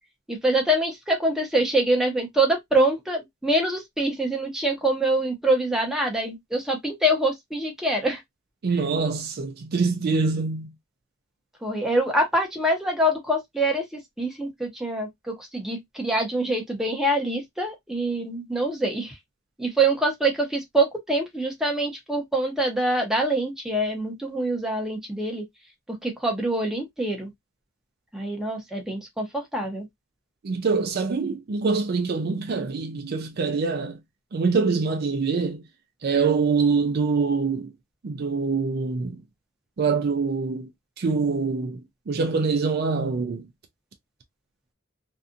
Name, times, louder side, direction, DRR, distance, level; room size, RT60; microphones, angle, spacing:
voice 1, 0.3-8.2 11.6-19.1 19.6-25.4 26.0-27.3 28.1-29.9, right 1 dB, ahead, 0.8 m, -25 dB
voice 2, 8.6-10.7 30.4-34.0 34.3-35.6 36.0-37.7 38.0-39.2 39.8-40.7 41.0-41.8 42.1-43.4, right 4 dB, 50° right, 0.4 m, -24 dB
2.6 x 2.4 x 2.4 m
head